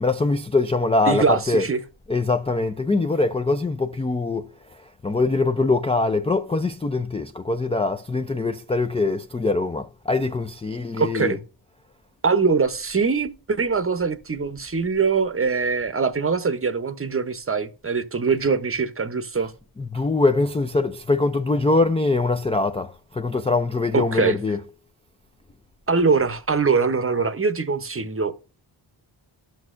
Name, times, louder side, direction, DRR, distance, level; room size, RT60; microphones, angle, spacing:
voice 1, 0.0-1.7 2.1-4.5 5.0-11.4 19.4-19.5 19.8-24.6, left 3 dB, 15° left, 0.3 m, -23 dB
voice 2, 1.1-1.8 11.0-11.4 12.2-19.5 23.9-24.4 25.9-28.3, right 5 dB, 25° right, 0.7 m, -22 dB
12.0 x 6.3 x 2.5 m
cardioid pair, 70°, 49 cm